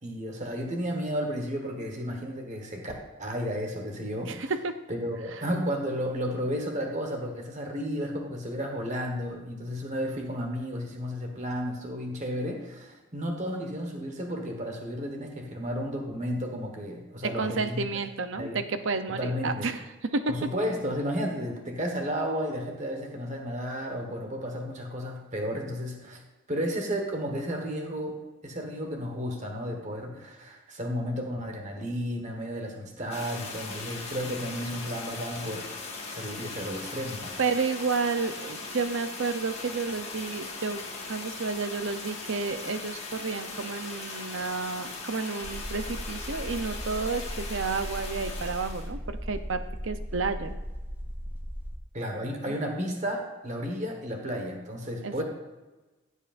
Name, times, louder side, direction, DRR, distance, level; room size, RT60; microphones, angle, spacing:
voice 1, 0.0-2.9 3.2-4.3 4.9-17.9 18.3-18.6 19.1-19.7 20.3-26.2 26.5-28.1 28.4-35.7 36.1-37.3 51.9-55.2, equal, 35° right, 2 dB, 1.3 m, -33 dB
voice 2, 4.3-4.8 17.2-20.5 37.4-50.6 52.5-52.6 55.0-55.2, right 4 dB, 60° right, 10 dB, 0.7 m, -31 dB
sound 1, 33.1-48.9, left 3 dB, 30° left, 1.6 m, -39 dB
sound 2, 45.4-51.8, equal, 10° right, 0.8 m, -37 dB
16.0 x 8.2 x 2.5 m, 1.1 s
head